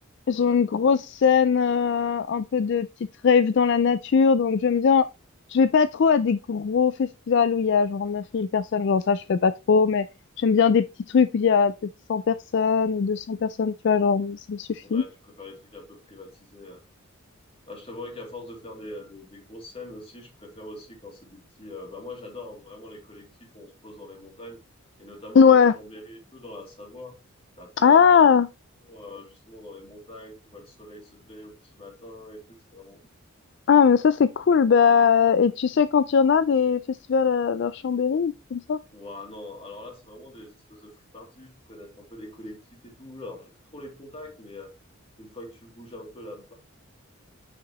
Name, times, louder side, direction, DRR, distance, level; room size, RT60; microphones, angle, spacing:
voice 1, 0.3-2.9 3.2-5.1 5.5-10.1 10.4-15.0 25.4-25.7 27.8-28.5 33.7-38.8, left 6 dB, 55° left, 0.3 m, -20 dB
voice 2, 14.8-16.8 17.7-24.6 25.0-27.2 27.6-28.2 28.8-33.0 38.9-44.7 45.2-46.5, left 2 dB, 25° left, 2.8 m, -43 dB
8.7 x 6.5 x 3.0 m
head